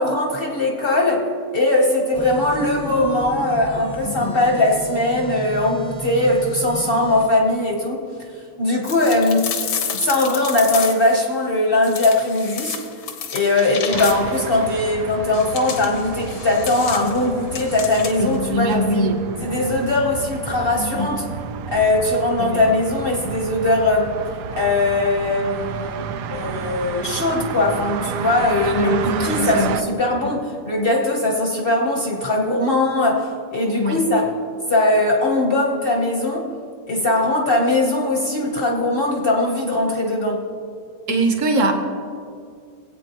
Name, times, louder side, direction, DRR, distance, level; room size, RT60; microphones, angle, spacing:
voice 1, 0.0-8.0 8.6-9.5 9.9-12.8 13.3-19.1 19.4-21.3 21.7-24.2 24.5-34.3 34.7-36.5 36.9-40.4, left 2 dB, 40° left, 0 dB, 0.8 m, -20 dB
sound 1, 2.1-7.3, right 1 dB, 5° left, 0.7 m, -34 dB
voice 2, 4.0-4.4 18.2-19.2 20.8-21.1 22.4-22.6 28.7-29.7 30.2-30.3 33.8-34.0 41.1-41.8, right 1 dB, 50° right, 4 dB, 1.1 m, -22 dB
sound 2, 8.8-11.2 11.8-14.5 15.3-18.4, left 7 dB, 75° left, 1.6 m, -30 dB
sound 3, 13.9-29.8, right 7 dB, 75° right, 1.0 m, -31 dB
19.5 x 8.3 x 3.0 m, 2.3 s
omnidirectional pair, 2.3 m